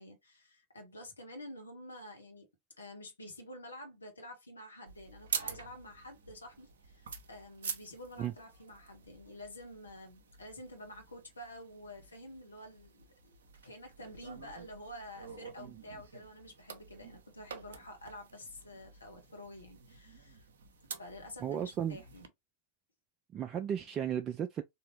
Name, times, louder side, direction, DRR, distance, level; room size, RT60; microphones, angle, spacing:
voice 1, 0.0-2.5 2.8-13.4 13.6-20.5 21.0-22.3, left 1 dB, 75° left, 1.3 m, -49 dB
sound 1, 4.9-22.3, right 6 dB, 60° right, 0.7 m, -47 dB
voice 2, 21.4-22.0 23.3-24.6, right 9 dB, 30° right, 0.4 m, -34 dB
3.7 x 2.8 x 3.0 m
figure-of-eight pair, 90°, 0 cm